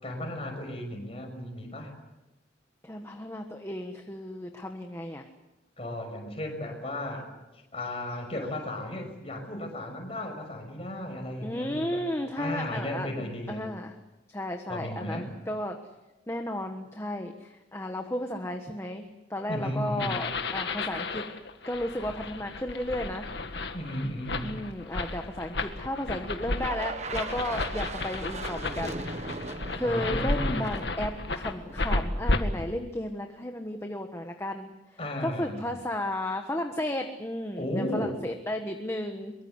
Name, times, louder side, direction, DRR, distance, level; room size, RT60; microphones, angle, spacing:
voice 1, 0.0-1.9 5.8-12.1 12.4-13.7 14.7-15.3 19.5-20.2 23.7-24.5 29.8-30.7 35.0-35.7 37.6-38.1, left 1 dB, 30° left, 3 dB, 6.2 m, -35 dB
voice 2, 2.8-5.2 11.4-13.9 14.3-15.8 16.3-19.0 19.3-21.3 21.7-23.3 24.4-29.0 29.3-29.4 29.7-34.7 35.2-39.3, left 1 dB, 15° left, 4 dB, 1.3 m, -33 dB
sound 1, 20.0-32.4, left 2 dB, 65° left, 1.9 m, -33 dB
sound 2, 26.6-31.9, right 3 dB, 35° right, 1.3 m, -39 dB
23.5 x 23.5 x 8.2 m, 1.0 s
head